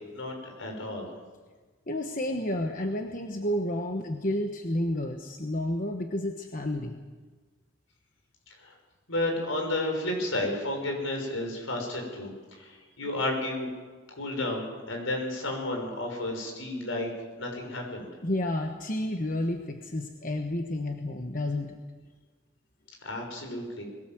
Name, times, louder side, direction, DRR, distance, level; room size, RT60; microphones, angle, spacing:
voice 1, 0.1-1.1 8.6-8.7 9.1-13.7 14.1-17.1 17.4-18.1 23.0-23.8, left 1 dB, 80° left, 2 dB, 6.2 m, -32 dB
voice 2, 1.9-7.0 18.2-21.8, left 1 dB, 40° left, 4 dB, 1.2 m, -31 dB
22.0 x 17.5 x 7.7 m, 1.4 s
head